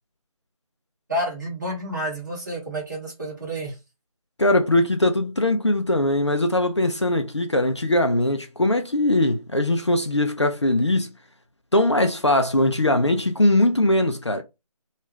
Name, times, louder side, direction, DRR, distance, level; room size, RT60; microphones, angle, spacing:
voice 1, 1.1-3.8, equal, 30° right, 1.6 m, -29 dB
voice 2, 4.4-11.1 11.7-14.4, left 1 dB, 50° left, 0.4 m, -21 dB
3.1 x 2.4 x 3.3 m
figure-of-eight pair, 180°, 19 cm